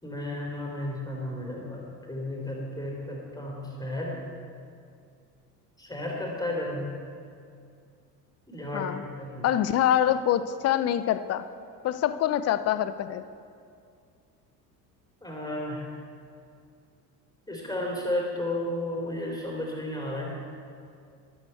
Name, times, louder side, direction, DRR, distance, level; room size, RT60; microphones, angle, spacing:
voice 1, 0.0-4.2 5.8-6.9 8.5-9.5 15.2-15.9 17.5-20.4, left 1 dB, 10° left, -1 dB, 3.4 m, -33 dB
voice 2, 9.4-11.4 11.8-13.2, left 11 dB, 30° left, 13 dB, 0.6 m, -25 dB
13.0 x 11.5 x 4.5 m, 2.3 s
figure-of-eight pair, 60°, 49 cm